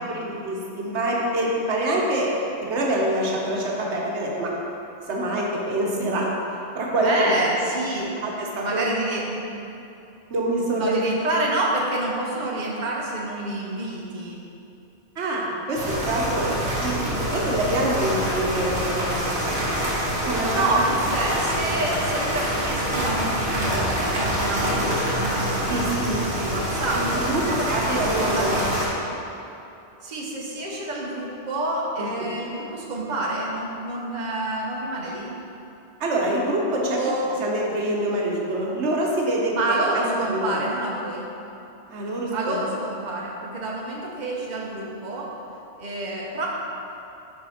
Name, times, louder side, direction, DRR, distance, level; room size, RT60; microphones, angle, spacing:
voice 1, 0.0-2.3 2.6-4.5 5.1-6.3 6.7-7.1 8.2-8.9 10.3-11.0 15.2-16.5 16.8-19.2 20.2-20.6 25.7-26.2 26.9-28.6 32.0-32.1 36.0-37.0 37.4-40.7 41.9-42.6, right 1 dB, 80° right, -2 dB, 1.2 m, -25 dB
voice 2, 7.0-8.2 8.6-9.4 10.8-14.4 20.2-25.9 26.4-28.6 30.0-35.4 37.0-37.4 39.5-41.3 42.3-45.3 45.7-46.5, right 2 dB, 45° right, -3 dB, 0.9 m, -28 dB
sound 1, 15.7-28.9, equal, 65° right, 1.8 m, -26 dB
6.1 x 5.1 x 4.2 m, 2.8 s
omnidirectional pair, 1.1 m